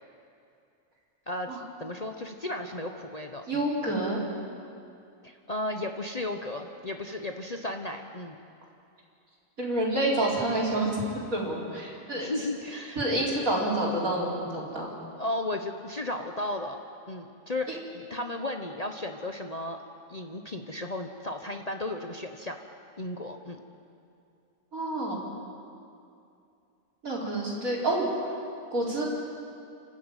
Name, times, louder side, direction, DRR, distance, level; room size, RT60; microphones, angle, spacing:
voice 1, 1.3-3.6 5.2-8.4 12.2-13.0 15.2-16.8 17.1-19.8 20.1-22.6 23.0-23.6, left 1 dB, 30° left, 4 dB, 1.0 m, -34 dB
voice 2, 3.5-4.2 9.6-11.0 11.3-12.3 13.0-14.9 24.7-25.3 27.0-28.1 28.7-29.1, right 1 dB, 80° right, -4 dB, 5.0 m, -28 dB
30.0 x 12.5 x 9.0 m, 2.6 s
omnidirectional pair, 1.4 m